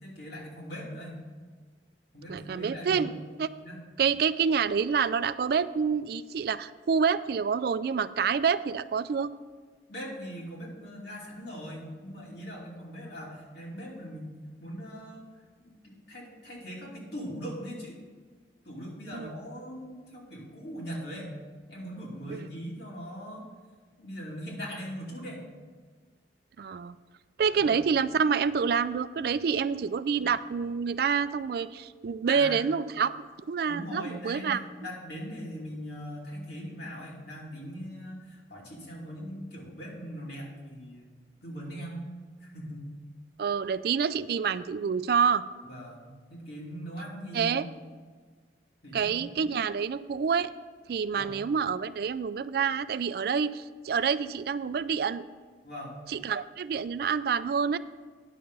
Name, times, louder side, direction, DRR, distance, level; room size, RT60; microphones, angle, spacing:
voice 1, 0.0-1.2 2.1-3.0 3.6-3.8 9.9-15.2 15.6-18.0 18.6-21.3 21.7-23.4 24.0-25.5 27.5-27.7 32.3-32.6 33.6-41.1 41.4-42.8 45.6-47.6 48.8-49.2 51.1-51.3 55.6-55.9, equal, 65° left, -3 dB, 2.8 m, -40 dB
voice 2, 2.3-3.5 4.0-9.3 19.1-19.3 22.3-22.5 26.6-26.9 27.4-33.1 33.5-34.6 43.4-45.4 47.3-47.7 48.9-50.5 50.9-55.2 56.1-57.8, right 6 dB, 60° right, 14 dB, 0.3 m, -27 dB
10.0 x 6.7 x 5.4 m, 1.5 s
head